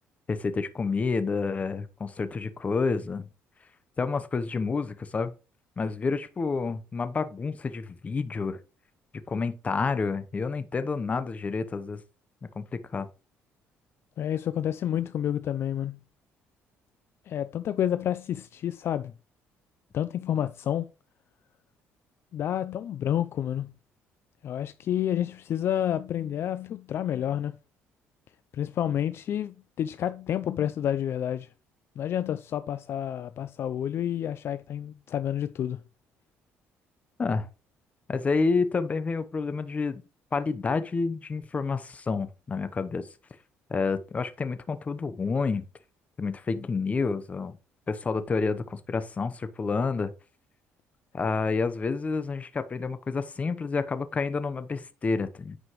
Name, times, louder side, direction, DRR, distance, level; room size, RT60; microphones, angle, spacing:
voice 1, 0.3-3.3 4.0-5.3 5.8-8.6 9.3-12.0 12.5-13.1 37.2-37.5 38.1-40.0 40.3-43.1 43.7-45.6 46.2-47.6 47.9-50.1 51.1-55.6, left 4 dB, 30° left, 0.8 m, -29 dB
voice 2, 14.2-16.0 17.3-19.1 19.9-20.9 22.3-23.7 24.4-27.6 28.5-31.5 32.0-35.8, left 10 dB, 55° left, 0.4 m, -29 dB
9.6 x 5.1 x 3.1 m
cardioid pair, 105°, 5 cm